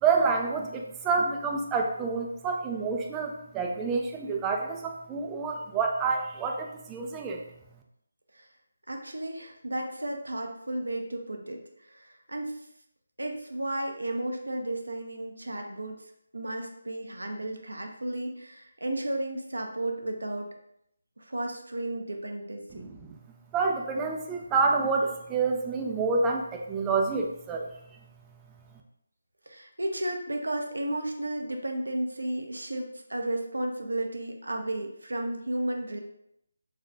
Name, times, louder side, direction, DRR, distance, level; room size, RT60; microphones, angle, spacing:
voice 1, 0.0-7.4 22.7-23.2 23.5-27.7, right 4 dB, 15° right, 1 dB, 0.5 m, -28 dB
voice 2, 8.9-12.6 13.2-16.0 16.3-20.5 21.2-22.9 29.5-36.0, right 1 dB, 80° right, 3 dB, 0.7 m, -33 dB
6.4 x 2.4 x 2.7 m, 0.76 s
figure-of-eight pair, 155°, 0 cm